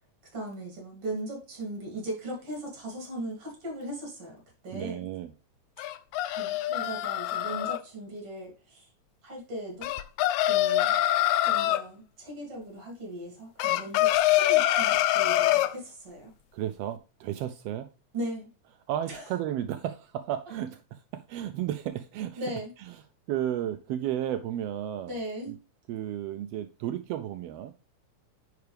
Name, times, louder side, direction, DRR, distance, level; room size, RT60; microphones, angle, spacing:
voice 1, 0.3-4.3 4.6-5.1 6.4-8.9 9.2-9.9 10.5-11.0 11.4-16.3 18.1-18.5 19.1-19.3 22.4-22.7 25.1-25.5, right 1 dB, 50° right, 3.7 m, -38 dB
voice 2, 4.7-5.3 16.5-17.9 18.9-22.4 22.9-23.0 23.3-25.2 25.5-25.6 25.9-27.7, right 11 dB, 90° right, 1.4 m, -33 dB
sound 1, 5.8-7.8 9.8-11.8 13.6-15.7, left 14 dB, 85° left, 2.0 m, -24 dB
9.4 x 4.7 x 3.3 m
omnidirectional pair, 3.3 m